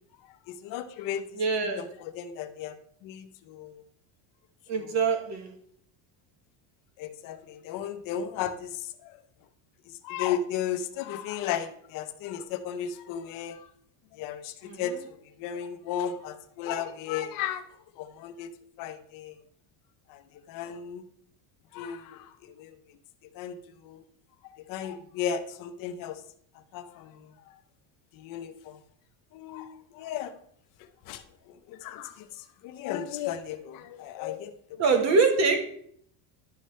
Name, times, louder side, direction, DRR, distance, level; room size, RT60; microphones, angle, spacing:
voice 1, 0.5-1.4 1.8-2.7 3.0-3.8 4.8-5.0 7.0-9.2 10.0-13.7 14.1-15.0 15.4-17.7 18.0-18.5 18.8-19.4 20.1-20.2 20.5-21.0 21.7-22.8 23.3-24.0 24.5-26.2 26.7-27.3 28.1-28.8 29.3-30.3 31.1-34.8, left 9 dB, 45° left, 8 dB, 0.7 m, -35 dB
voice 2, 1.3-1.9 4.7-5.5 14.6-15.0 34.8-35.7, right 4 dB, 35° right, 5 dB, 1.1 m, -24 dB
11.5 x 5.5 x 3.1 m, 0.64 s
cardioid pair, 175°, 46 cm